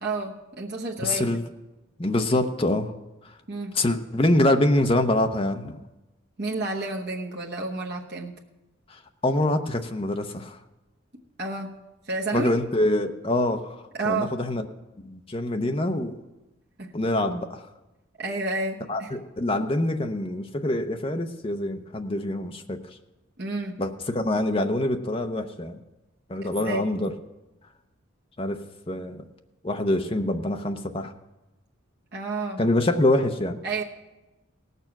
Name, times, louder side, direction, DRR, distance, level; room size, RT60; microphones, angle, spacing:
voice 1, 0.0-1.4 3.5-3.8 6.4-8.3 11.4-11.7 12.1-12.5 13.9-14.4 16.8-16.9 18.2-19.1 23.4-23.8 26.4-26.8 32.1-32.6 33.6-33.8, right 3 dB, 50° right, -2 dB, 1.0 m, -30 dB
voice 2, 1.0-1.4 2.0-2.9 3.7-5.8 8.9-10.6 12.3-13.7 14.0-14.6 15.0-16.2 16.9-17.6 18.9-22.8 23.8-25.8 26.3-27.1 28.4-28.6 28.9-29.2 29.6-31.1 32.6-33.6, left 1 dB, 25° left, 6 dB, 0.7 m, -25 dB
18.0 x 6.8 x 5.9 m, 1.0 s
head